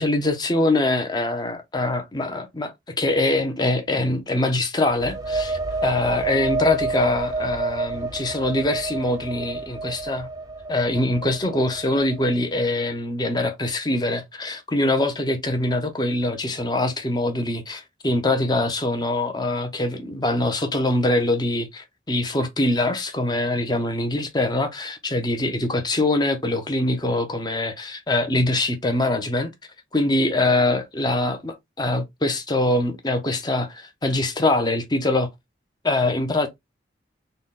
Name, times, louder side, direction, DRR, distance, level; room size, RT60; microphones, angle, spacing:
voice 1, 0.0-10.3 10.7-29.5 29.9-35.3 35.8-36.5, left 2 dB, 20° left, 0.8 m, -23 dB
sound 1, 4.9-12.5, right 3 dB, 20° right, 0.5 m, -29 dB
3.9 x 2.3 x 3.7 m
head